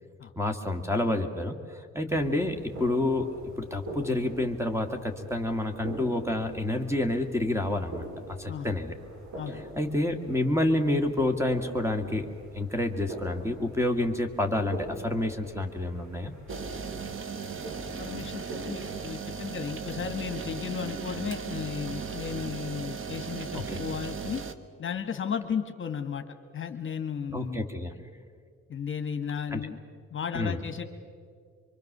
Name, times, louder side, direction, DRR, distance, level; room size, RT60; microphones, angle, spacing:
voice 1, 0.4-3.3 3.6-8.0 8.4-8.9 9.8-12.3 12.5-16.3 23.5-23.8 27.3-27.9 29.5-29.7 30.3-30.6, left 1 dB, 10° right, 6 dB, 2.1 m, -28 dB
sound 1, 2.1-19.1, right 1 dB, 70° right, 6.8 m, -44 dB
sound 2, 16.5-24.5, right 6 dB, 40° right, 1.4 m, -37 dB
voice 2, 18.0-24.4 24.8-26.2 26.5-27.6 28.7-29.8 30.1-30.8, left 7 dB, 40° left, 7 dB, 1.6 m, -34 dB
24.5 x 24.0 x 6.8 m, 2.1 s
cardioid pair, 90°, 30 cm